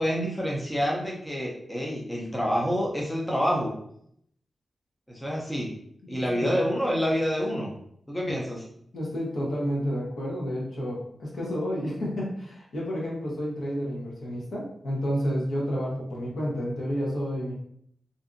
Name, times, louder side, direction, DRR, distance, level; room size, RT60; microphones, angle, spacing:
voice 1, 0.0-3.7 5.1-5.7 6.1-7.7 8.1-8.7, equal, 5° left, -3 dB, 0.5 m, -27 dB
voice 2, 6.0-6.6 8.3-8.4 8.9-17.5, equal, 70° left, -4 dB, 1.0 m, -30 dB
2.6 x 2.5 x 2.5 m, 0.68 s
wide cardioid pair, 145°, 0 cm